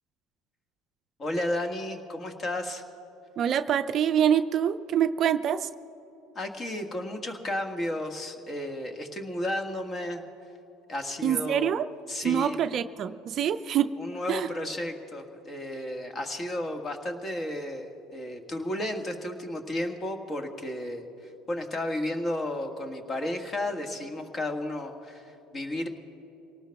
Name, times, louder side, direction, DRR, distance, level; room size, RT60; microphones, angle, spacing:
voice 1, 1.2-2.8 6.3-10.2 10.9-11.7 12.1-12.6 14.0-21.0 21.5-25.9, left 1 dB, 35° left, 4 dB, 1.6 m, -33 dB
voice 2, 3.4-5.7 11.2-11.9 12.2-13.9 14.3-14.5, right 9 dB, 50° right, 11 dB, 0.4 m, -25 dB
25.0 x 18.5 x 2.3 m, 3.0 s
hypercardioid pair, 70°, 0 cm